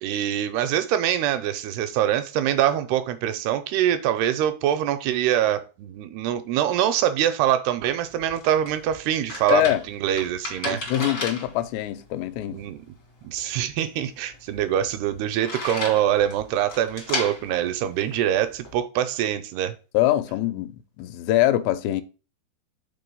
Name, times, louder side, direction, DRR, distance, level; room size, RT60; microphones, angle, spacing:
voice 1, 0.0-10.8 12.5-12.9 13.2-19.8, right 11 dB, 80° right, 2.5 m, -24 dB
sound 1, 7.9-18.8, left 2 dB, 65° left, 1.0 m, -36 dB
voice 2, 9.5-9.8 10.7-12.6 19.9-20.7 21.0-22.0, left 13 dB, 85° left, 2.8 m, -23 dB
6.0 x 3.8 x 5.2 m
omnidirectional pair, 4.8 m